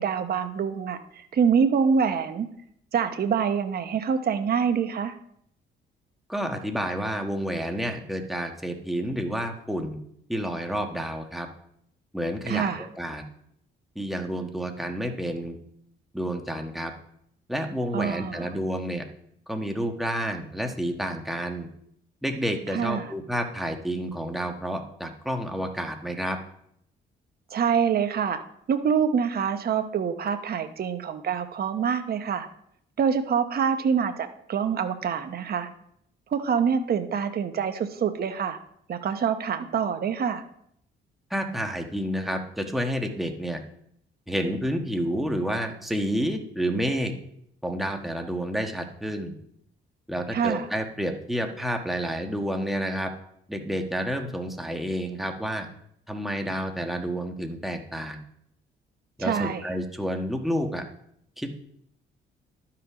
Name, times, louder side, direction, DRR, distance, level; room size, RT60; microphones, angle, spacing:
voice 1, 0.0-2.5 2.9-5.1 12.5-12.9 17.9-18.5 22.7-23.1 27.5-28.4 28.7-32.5 33.0-35.7 36.3-38.6 38.9-40.4 50.3-50.7 59.2-59.7, right 7 dB, 50° right, 8 dB, 0.9 m, -25 dB
voice 2, 6.3-10.0 10.3-11.5 12.1-13.2 13.9-15.6 16.1-16.9 17.5-19.0 19.5-21.7 22.2-26.4 41.3-43.6 44.3-47.1 47.6-49.3 50.1-53.1 53.5-55.7 56.1-58.2 59.2-60.8 61.4-61.6, equal, ahead, 3 dB, 1.3 m, -29 dB
11.5 x 5.9 x 4.9 m, 0.70 s
cardioid pair, 90°, 20 cm